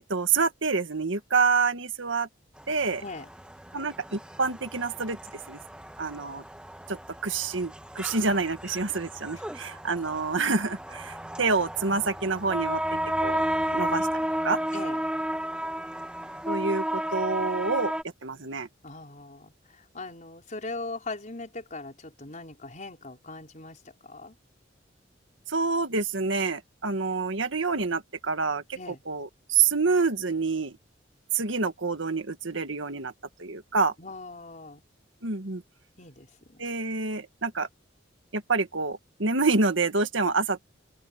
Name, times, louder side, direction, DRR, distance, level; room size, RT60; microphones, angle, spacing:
voice 1, 0.1-2.3 2.7-3.0 3.7-5.2 5.5-5.6 6.0-6.4 6.9-12.8 13.2-13.4 13.7-14.6 16.5-17.9 18.2-18.7 25.5-28.6 29.1-30.8 31.3-33.1 33.4-33.9 35.2-35.6 36.6-37.7 38.3-40.7, right 4 dB, 85° right, 1.8 m, -27 dB
sound 1, 2.6-18.0, right 1 dB, 5° right, 1.6 m, -33 dB
voice 2, 18.8-24.3 28.7-29.0 34.0-34.8 36.0-36.6, left 3 dB, 40° left, 4.7 m, -40 dB
open air
head